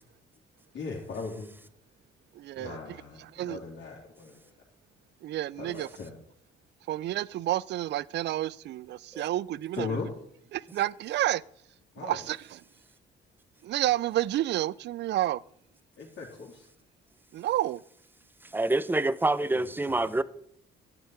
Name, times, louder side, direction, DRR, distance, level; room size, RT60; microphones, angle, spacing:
voice 1, 0.7-1.5 2.6-4.4 5.6-6.2 9.7-10.1 11.9-12.2 16.0-16.7 19.4-20.2, left 4 dB, 65° left, 3.1 m, -38 dB
voice 2, 2.3-2.8 3.3-3.6 5.2-5.9 6.9-10.0 10.5-11.4 12.0-12.4 13.6-15.4 17.3-17.8, right 14 dB, 60° right, 0.4 m, -30 dB
voice 3, 18.5-20.2, right 2 dB, 10° right, 0.6 m, -26 dB
12.0 x 8.2 x 4.6 m
cardioid pair, 90°, 20 cm